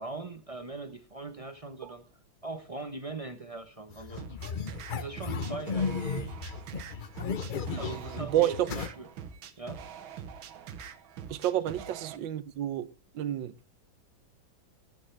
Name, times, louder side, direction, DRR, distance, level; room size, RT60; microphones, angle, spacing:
voice 1, 0.0-2.0 2.4-4.2 4.9-6.2 7.8-9.1 9.6-9.8, right 3 dB, 35° right, 0.5 m, -40 dB
sound 1, 3.9-8.9, left 5 dB, 75° left, 0.4 m, -35 dB
sound 2, 4.2-12.2, right 8 dB, 90° right, 1.9 m, -44 dB
voice 2, 7.7-8.7 11.3-12.9 13.1-13.5, right 13 dB, 75° right, 1.4 m, -30 dB
19.0 x 9.0 x 3.2 m
omnidirectional pair, 2.1 m